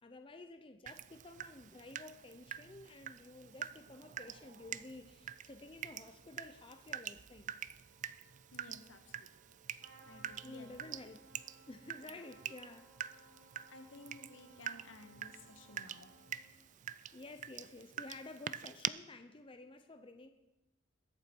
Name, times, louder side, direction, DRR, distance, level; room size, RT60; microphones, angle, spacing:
voice 1, 0.0-7.5 10.4-11.2 11.7-12.9 17.1-20.3, left 2 dB, 25° left, 7 dB, 0.7 m, -52 dB
Water tap faucet / Drip, 0.9-18.9, right 10 dB, 40° right, 0.3 m, -46 dB
Wind instrument woodwind instrument, 3.8-16.5, right 2 dB, 85° right, 3.6 m, -72 dB
voice 2, 8.5-9.6 10.0-11.0 12.2-12.3 13.7-16.2 17.0-17.2, left 2 dB, 80° left, 7 dB, 1.5 m, -56 dB
Trumpet, 9.8-16.7, right 2 dB, 60° right, 2.8 m, -63 dB
21.5 x 8.3 x 4.5 m, 0.96 s
head